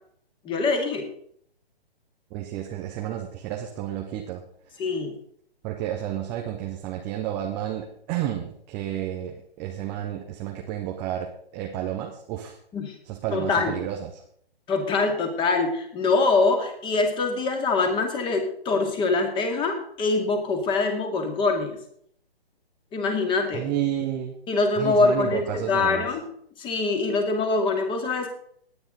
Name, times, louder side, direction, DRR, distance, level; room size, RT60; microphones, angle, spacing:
voice 1, 0.4-1.1 4.8-5.2 12.7-12.9 13.3-13.7 14.7-21.8 22.9-23.7 24.5-26.2 26.6-28.3, left 3 dB, 15° left, 5 dB, 2.3 m, -24 dB
voice 2, 2.3-4.4 4.7-4.8 5.6-12.6 13.0-14.2 23.5-24.3 24.8-26.1, right 11 dB, 5° right, 1 dB, 0.4 m, -31 dB
18.0 x 9.7 x 3.9 m, 0.65 s
figure-of-eight pair, 135°, 31 cm